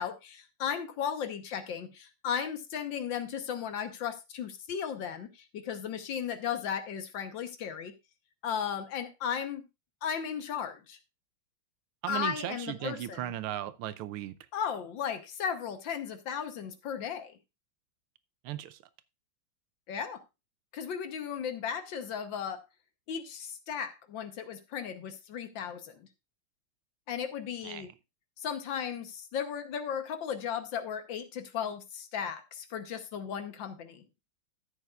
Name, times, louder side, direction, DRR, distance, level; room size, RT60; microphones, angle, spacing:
voice 1, 0.0-7.9 8.4-9.6 10.0-11.0 12.1-13.3 14.5-17.4 19.9-20.2 20.7-22.6 23.1-26.1 27.1-27.9 28.4-34.0, left 8 dB, 65° left, 1.6 m, -35 dB
voice 2, 12.0-14.3 18.4-18.8 27.6-27.9, right 12 dB, 85° right, 1.5 m, -36 dB
13.5 x 8.1 x 2.4 m
omnidirectional pair, 2.3 m